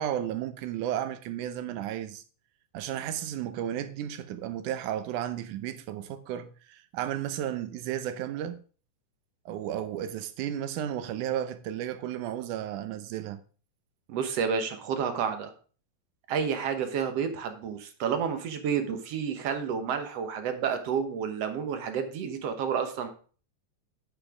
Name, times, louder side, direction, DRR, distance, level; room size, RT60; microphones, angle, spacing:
voice 1, 0.0-2.2 2.7-8.6 9.5-13.4, right 11 dB, 90° right, 2.3 m, -33 dB
voice 2, 14.1-15.5 16.3-23.1, right 7 dB, 65° right, 2.0 m, -30 dB
8.5 x 6.4 x 4.9 m
omnidirectional pair, 3.5 m